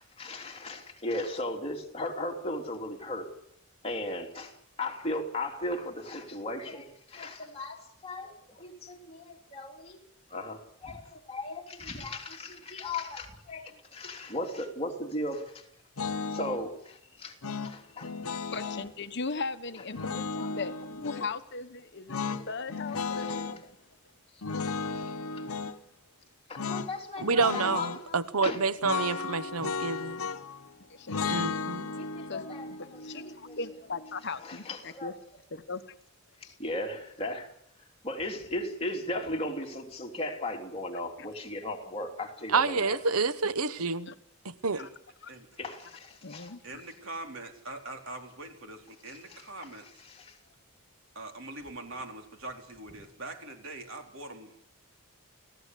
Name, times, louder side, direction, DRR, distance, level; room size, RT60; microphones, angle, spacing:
voice 1, 0.0-3.3 3.8-10.0 10.3-15.6 16.3-17.4 17.6-18.1 20.3-21.3 22.2-22.5 23.1-23.5 24.9-25.2 26.5-28.7 31.9-33.6 34.4-35.1 36.6-37.5 38.0-43.0 45.6-46.4 49.1-49.4 50.0-50.4, left 1 dB, 25° left, 3.2 m, -37 dB
sound 1, 16.0-16.6 17.4-18.9 19.9-21.3 22.1-23.6 24.4-25.8 26.6-26.9 27.2-28.0 28.8-30.6 31.1-34.2, left 5 dB, 75° left, 1.1 m, -35 dB
voice 2, 18.5-23.7 30.9-31.2 32.3-35.1 35.5-35.9 36.4-36.5 44.1-44.2 44.8-44.9 45.2-45.3 46.2-46.6, left 4 dB, 50° left, 1.2 m, -38 dB
voice 3, 27.2-30.2 31.3-31.9 42.5-44.1 44.4-44.8, right 4 dB, 85° right, 1.0 m, -28 dB
voice 4, 45.3-45.6 46.6-50.0 51.1-54.5, right 2 dB, 60° right, 4.2 m, -43 dB
29.0 x 16.0 x 8.3 m
head